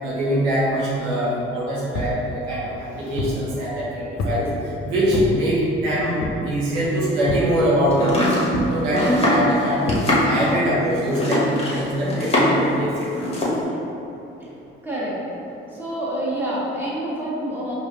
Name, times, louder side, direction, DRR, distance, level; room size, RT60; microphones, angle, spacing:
voice 1, 0.0-2.6 2.9-4.5 4.8-6.2 6.4-8.2 8.7-9.9 10.3-13.1, equal, 80° right, -7 dB, 0.9 m, -23 dB
sound 1, 1.9-2.2 2.8-3.4 4.2-4.5 5.1-5.4 6.2-6.5 7.3-7.6 8.5-8.8 9.9-10.1, left 1 dB, 60° left, 0.7 m, -27 dB
Domestic sounds home sounds, 7.9-12.7 13.0-13.6, left 1 dB, 20° left, 1.2 m, -22 dB
voice 2, 14.8-15.2 15.7-17.8, right 1 dB, 5° right, -8 dB, 1.5 m, -27 dB
4.7 x 2.5 x 3.0 m, 2.9 s
hypercardioid pair, 50°, 30 cm